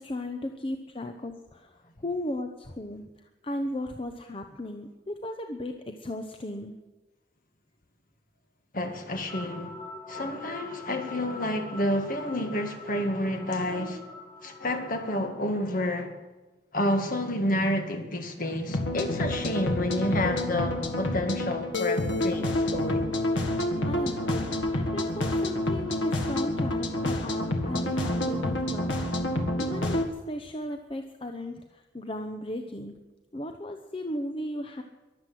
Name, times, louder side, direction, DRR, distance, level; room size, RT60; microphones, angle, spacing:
voice 1, 0.0-6.7 23.8-28.9 29.6-30.0 30.3-33.0 33.3-34.8, left 1 dB, 30° left, 0.9 m, -36 dB
voice 2, 8.7-9.8 10.1-16.1 16.7-23.0, left 1 dB, 45° left, 1.9 m, -29 dB
sound 1, 9.3-15.2, left 2 dB, 10° left, 1.8 m, -44 dB
sound 2, 18.7-30.1, left 1 dB, 80° left, 1.8 m, -28 dB
22.5 x 8.1 x 7.7 m
head